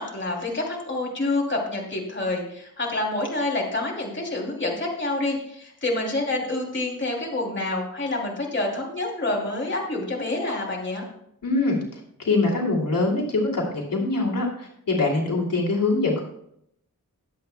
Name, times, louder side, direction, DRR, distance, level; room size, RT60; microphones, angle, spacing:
voice 1, 0.0-11.0, left 2 dB, 35° left, -1 dB, 2.9 m, -27 dB
voice 2, 11.4-16.2, left 3 dB, 70° left, -2 dB, 2.7 m, -24 dB
21.5 x 8.1 x 2.2 m, 0.72 s
wide cardioid pair, 95°, 34 cm